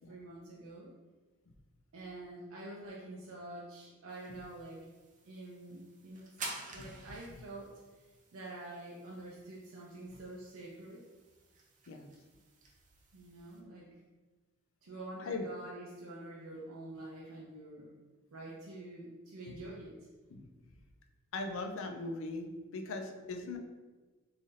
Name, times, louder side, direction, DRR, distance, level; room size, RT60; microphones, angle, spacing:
voice 1, 0.1-0.9 1.9-4.9 5.2-6.5 6.7-7.8 8.3-11.0 13.1-14.0 14.8-18.0 18.3-20.0, right 2 dB, 85° right, -4 dB, 0.6 m, -47 dB
sound 1, 4.1-13.6, right 3 dB, 40° right, 0.6 m, -51 dB
voice 2, 21.3-23.6, left 3 dB, 65° left, 4 dB, 0.4 m, -40 dB
3.7 x 3.2 x 2.6 m, 1.3 s
head